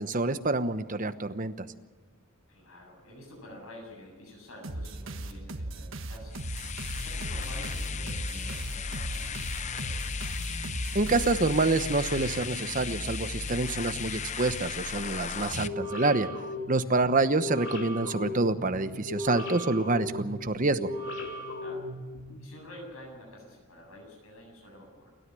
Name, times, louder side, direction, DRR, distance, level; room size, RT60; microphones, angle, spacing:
voice 1, 0.0-1.7 10.9-16.3 16.7-20.9, right 3 dB, 40° right, 11 dB, 1.0 m, -27 dB
voice 2, 2.5-6.4 6.9-10.5 16.8-17.1 21.6-21.9 22.4-25.1, left 1 dB, 80° left, 0 dB, 7.8 m, -49 dB
sound 1, 4.6-11.8, right 2 dB, 60° right, 1.5 m, -38 dB
sound 2, 6.3-15.7, left 5 dB, 35° left, 0.7 m, -35 dB
sound 3, 15.5-22.4, left 1 dB, 55° left, 3.2 m, -37 dB
29.0 x 13.0 x 7.7 m, 1.4 s
head